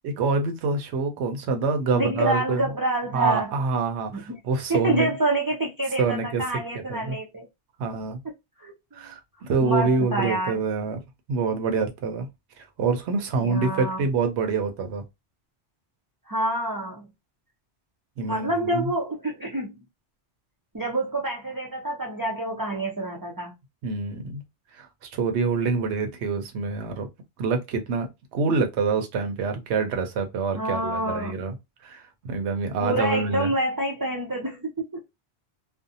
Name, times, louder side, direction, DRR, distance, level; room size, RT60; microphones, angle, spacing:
voice 1, 0.0-2.6 3.1-5.1 6.0-6.4 6.9-7.2 7.8-8.2 8.9-11.0 11.3-12.3 12.6-15.0 18.2-18.9 23.8-24.4 24.7-27.1 27.4-31.5 31.8-33.5, right 4 dB, 75° right, 0.9 m, -26 dB
voice 2, 1.9-3.5 4.1-4.4 4.7-7.5 8.6-8.7 9.0-9.1 9.6-10.6 13.4-14.0 16.3-17.1 18.3-19.8 20.7-23.5 30.6-31.4 32.8-35.0, right 1 dB, 30° right, 0.4 m, -27 dB
2.5 x 2.2 x 2.6 m
omnidirectional pair, 1.2 m